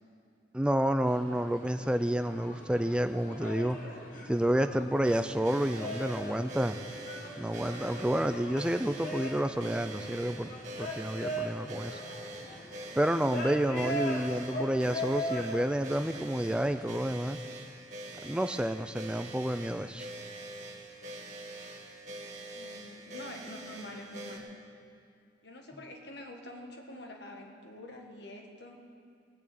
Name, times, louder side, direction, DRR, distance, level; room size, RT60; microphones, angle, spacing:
voice 1, 0.5-3.8 4.3-6.8 7.4-10.5 10.8-12.0 13.0-17.4 18.2-20.1, right 1 dB, 5° right, 8 dB, 0.3 m, -29 dB
sound 1, 1.0-16.9, equal, 45° left, 1.5 m, -41 dB
sound 2, 5.0-24.4, right 1 dB, 40° right, 1.8 m, -45 dB
voice 2, 13.6-14.1 22.5-24.4 25.4-28.8, left 1 dB, 65° left, 2 dB, 1.7 m, -46 dB
17.5 x 7.2 x 8.5 m, 2.3 s
head